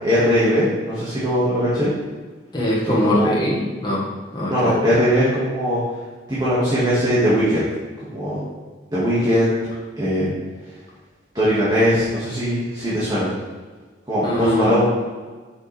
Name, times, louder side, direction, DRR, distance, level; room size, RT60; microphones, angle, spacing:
voice 1, 0.0-1.9 3.0-3.3 4.5-5.8 6.3-7.6 8.1-8.4 8.9-9.6 10.0-10.3 11.3-13.3 14.1-14.9, equal, 25° right, -10 dB, 2.0 m, -20 dB
voice 2, 2.5-4.1 4.3-4.8 14.2-14.7, left 1 dB, 25° left, -5 dB, 2.0 m, -21 dB
7.2 x 6.9 x 3.5 m, 1.4 s
head